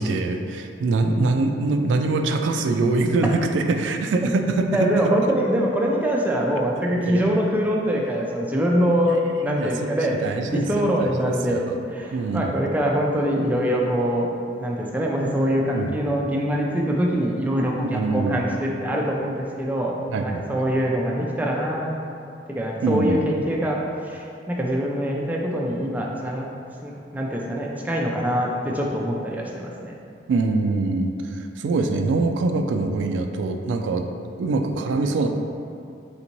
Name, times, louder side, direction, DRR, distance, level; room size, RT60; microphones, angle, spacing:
voice 1, 0.0-5.1 7.0-7.2 9.1-9.2 9.4-9.9 10.2-10.7 11.0-11.6 12.1-12.6 15.7-16.0 17.8-18.4 20.1-20.6 22.8-23.4 30.3-34.1 34.4-35.3, right 3 dB, 90° right, 5 dB, 0.3 m, -24 dB
voice 2, 4.7-10.1 10.5-14.3 14.6-21.9 22.5-23.8 24.0-26.5 26.8-30.0, equal, 10° right, -2 dB, 0.4 m, -24 dB
3.9 x 3.5 x 2.9 m, 2.5 s
head